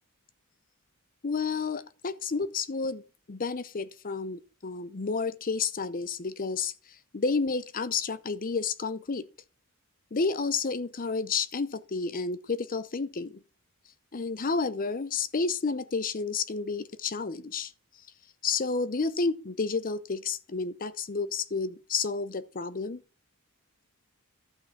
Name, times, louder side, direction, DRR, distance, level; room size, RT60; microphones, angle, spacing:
voice 1, 1.2-3.0 3.3-6.7 7.1-9.3 10.1-13.4 14.1-17.7 18.4-23.0, left 4 dB, 40° left, 0.6 m, -30 dB
12.5 x 6.0 x 6.0 m
head